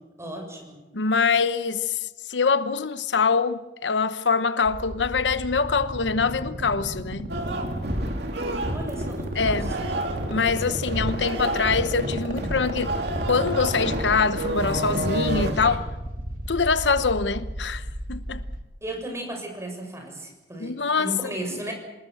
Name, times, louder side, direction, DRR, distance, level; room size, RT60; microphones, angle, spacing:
voice 1, 0.2-0.8 8.7-9.8 18.8-21.7, right 1 dB, 15° right, 7.1 m, -35 dB
voice 2, 0.9-7.3 9.4-9.7 10.3-13.0 13.3-15.9 16.5-18.4 20.6-21.1, left 5 dB, 80° left, 1.0 m, -24 dB
sound 1, 4.7-18.6, right 1 dB, 50° right, 2.9 m, -34 dB
sound 2, 7.3-15.8, right 1 dB, 65° right, 3.1 m, -29 dB
27.0 x 19.5 x 7.9 m
head